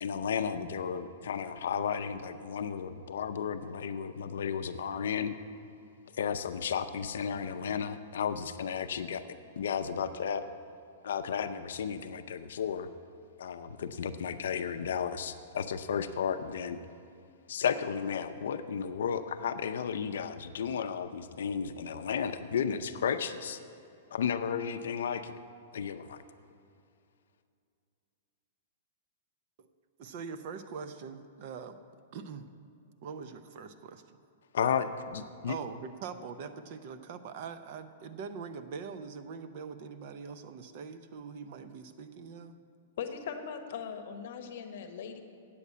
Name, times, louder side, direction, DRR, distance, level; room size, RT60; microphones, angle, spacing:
voice 1, 0.0-5.3 6.1-9.3 9.6-10.5 11.0-12.9 13.4-16.8 17.5-23.6 24.1-25.4 25.7-26.2 34.5-35.6, left 7 dB, 70° left, 10 dB, 0.5 m, -33 dB
voice 2, 30.0-31.8 32.1-32.5 33.0-34.2 35.5-42.6, right 6 dB, 35° right, 10 dB, 0.4 m, -43 dB
voice 3, 43.0-45.2, left 7 dB, 50° left, 7 dB, 0.9 m, -39 dB
8.4 x 6.8 x 8.3 m, 2.5 s
supercardioid pair, 180°, 0 cm